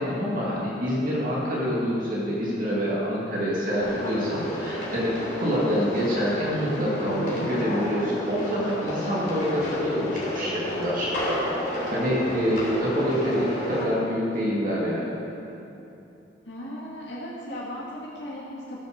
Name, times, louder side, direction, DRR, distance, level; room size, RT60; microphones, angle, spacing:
voice 1, 0.0-11.1 11.9-15.0, equal, 50° right, -6 dB, 2.3 m, -26 dB
sound 1, 3.8-13.8, equal, 45° left, 3.0 m, -31 dB
voice 2, 16.5-18.8, equal, 75° left, -6 dB, 2.0 m, -36 dB
14.5 x 6.9 x 6.7 m, 2.8 s
head